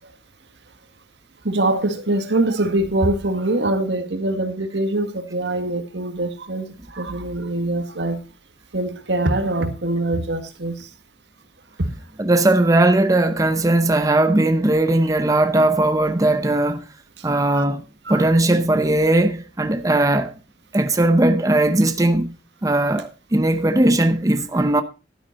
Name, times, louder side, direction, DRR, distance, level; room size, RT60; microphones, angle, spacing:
voice 1, 1.4-8.2 8.7-10.9 11.8-12.0 15.0-15.1 17.5-17.6 18.1-18.3, right 2 dB, 85° right, 1.7 m, -23 dB
voice 2, 12.2-16.9 17.2-17.8 18.1-20.3 20.7-22.3 22.6-24.8, right 1 dB, 20° right, 0.7 m, -18 dB
12.0 x 9.5 x 4.1 m
head